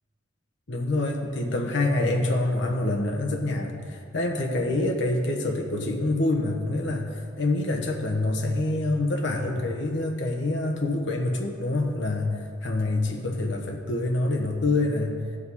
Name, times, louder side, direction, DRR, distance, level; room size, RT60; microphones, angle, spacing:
voice 1, 0.7-15.2, left 2 dB, 65° left, 1 dB, 1.0 m, -26 dB
15.5 x 5.2 x 4.1 m, 2.2 s
head